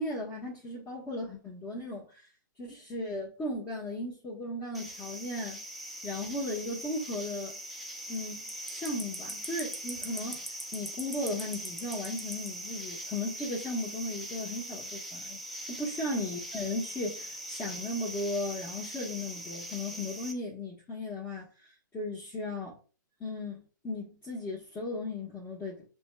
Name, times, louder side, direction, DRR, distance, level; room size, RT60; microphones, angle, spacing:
voice 1, 0.0-2.3 2.6-5.6 6.0-7.6 8.1-15.4 15.7-22.8 23.2-25.8, left 1 dB, 20° left, 1.3 m, -36 dB
sound 1, 4.7-20.3, right 1 dB, ahead, 0.7 m, -41 dB
6.8 x 3.0 x 2.3 m
figure-of-eight pair, 115°, 10 cm